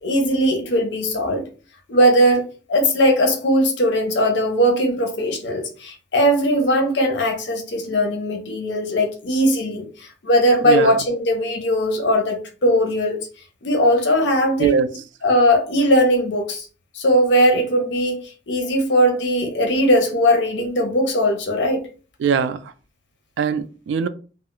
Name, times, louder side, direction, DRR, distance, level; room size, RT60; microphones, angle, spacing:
voice 1, 0.0-1.4 1.9-2.4 2.7-13.2 13.6-14.8 15.2-16.7 16.9-21.8, equal, 70° left, 0.6 m, -19 dB
voice 2, 10.6-11.0 14.6-14.9 22.2-22.6 23.4-24.1, right 6 dB, 85° right, 0.3 m, -21 dB
2.2 x 2.0 x 3.8 m
head